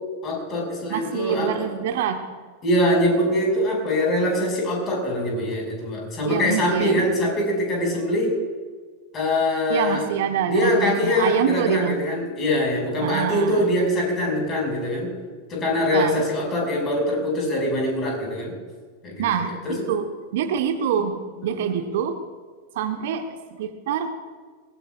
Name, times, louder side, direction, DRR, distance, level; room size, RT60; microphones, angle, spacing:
voice 1, 0.2-1.7 2.6-8.3 9.1-10.0 10.4-15.1 15.5-18.5 19.0-19.2 19.6-19.9 21.4-21.6, left 1 dB, 30° left, 0 dB, 5.5 m, -23 dB
voice 2, 0.9-2.2 6.2-7.1 9.7-12.0 13.0-13.7 15.9-16.2 19.2-22.2 22.7-24.2, right 8 dB, 55° right, 7 dB, 1.1 m, -26 dB
22.0 x 19.5 x 2.4 m, 1.5 s
figure-of-eight pair, 90°, 0 cm